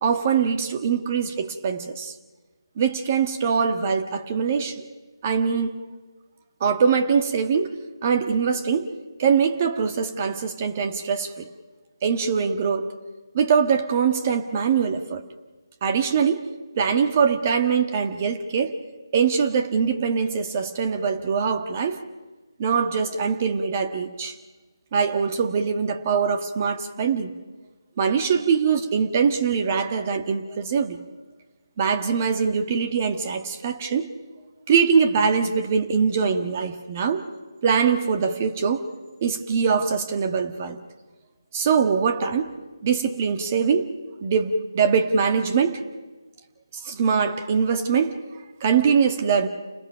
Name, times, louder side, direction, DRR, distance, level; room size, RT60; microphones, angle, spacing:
voice 1, 0.0-2.1 2.8-4.8 5.2-5.8 6.6-7.7 8.0-8.9 9.2-11.5 12.0-12.9 13.3-15.2 15.8-16.5 16.8-18.8 19.1-22.0 22.6-24.4 24.9-27.3 28.0-31.0 31.8-34.1 34.7-37.2 37.6-38.8 39.2-40.8 41.5-42.5 42.8-43.9 44.2-45.8 46.8-48.2 48.6-49.5, right 6 dB, 30° right, 1.7 m, -22 dB
29.5 x 20.5 x 5.8 m
figure-of-eight pair, 160°, 2 cm